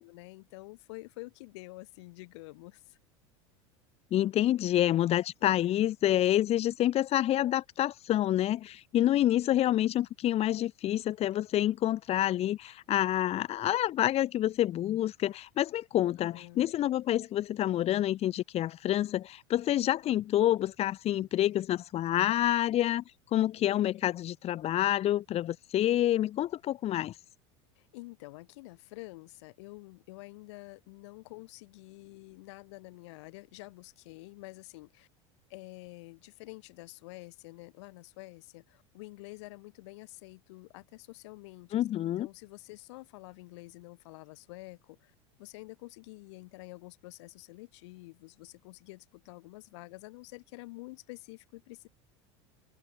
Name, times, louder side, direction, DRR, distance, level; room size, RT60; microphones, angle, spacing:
voice 1, 0.0-3.0 16.1-16.7 27.8-35.1 35.5-51.9, left 23 dB, 70° left, 3.8 m, -48 dB
voice 2, 4.1-23.0 23.3-27.1 41.7-42.3, left 13 dB, 45° left, 2.1 m, -28 dB
hypercardioid pair, 100°, 15 cm